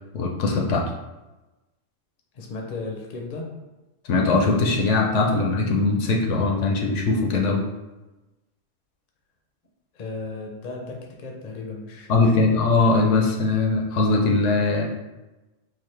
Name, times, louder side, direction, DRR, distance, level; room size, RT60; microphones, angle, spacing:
voice 1, 0.1-0.9 4.1-7.7 12.1-14.9, left 3 dB, 75° left, 0 dB, 0.9 m, -21 dB
voice 2, 2.3-3.5 9.9-12.5, left 3 dB, 50° left, 0 dB, 0.6 m, -35 dB
4.0 x 2.4 x 3.2 m, 1.1 s
omnidirectional pair, 1.3 m